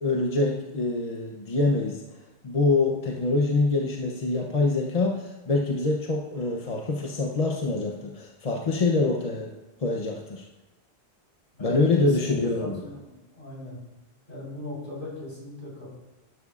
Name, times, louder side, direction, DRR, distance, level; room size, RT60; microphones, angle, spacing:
voice 1, 0.0-2.0 2.4-10.5 11.6-12.8, left 3 dB, 40° left, 0 dB, 0.8 m, -25 dB
voice 2, 11.5-13.8 14.3-15.9, left 1 dB, 55° left, -5 dB, 4.2 m, -39 dB
12.0 x 10.5 x 2.5 m, 1.0 s
omnidirectional pair, 1.1 m